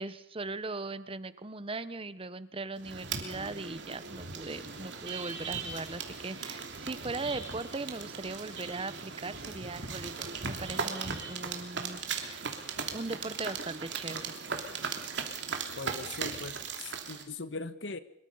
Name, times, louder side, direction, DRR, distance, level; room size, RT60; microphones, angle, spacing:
voice 1, 0.0-12.6 12.9-14.3, right 3 dB, 30° right, 15 dB, 1.0 m, -39 dB
sound 1, 2.8-17.2, right 5 dB, 70° right, 3.0 m, -38 dB
voice 2, 15.7-18.0, left 3 dB, 80° left, 13 dB, 1.4 m, -40 dB
25.0 x 22.5 x 5.6 m, 0.72 s
head